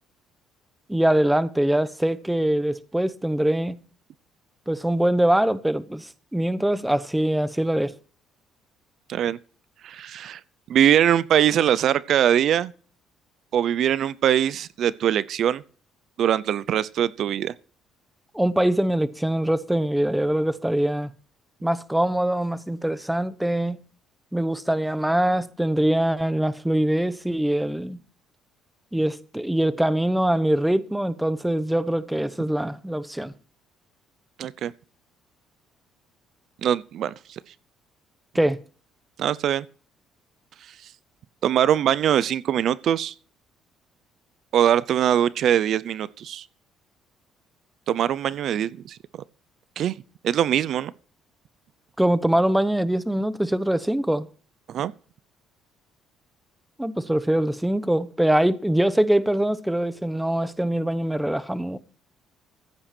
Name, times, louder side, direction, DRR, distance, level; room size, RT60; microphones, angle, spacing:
voice 1, 0.9-3.8 4.7-7.9 18.3-21.1 21.6-23.8 24.3-28.0 28.9-33.3 38.3-38.6 52.0-54.3 56.8-61.8, right 1 dB, 5° right, 0.9 m, -23 dB
voice 2, 9.8-10.4 10.7-12.7 13.5-15.6 16.2-17.5 34.4-34.7 36.6-37.4 39.2-39.7 41.4-43.1 44.5-46.4 47.9-49.0 49.8-50.0 50.2-50.9 54.7-54.9, right 10 dB, 60° right, 0.5 m, -22 dB
15.0 x 8.7 x 4.4 m
cardioid pair, 115°, 0 cm